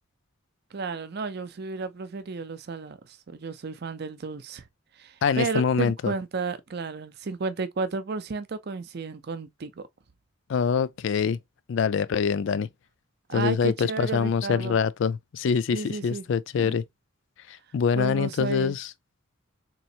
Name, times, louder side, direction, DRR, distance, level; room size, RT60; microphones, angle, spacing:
voice 1, 0.7-4.6 5.0-9.8 13.3-14.8 15.7-16.2 16.6-16.7 18.0-18.8, right 4 dB, 50° right, 0.5 m, -33 dB
voice 2, 5.2-6.1 10.5-11.4 11.7-12.7 13.3-16.8 17.5-18.9, left 6 dB, 60° left, 0.3 m, -25 dB
3.9 x 3.1 x 2.7 m
head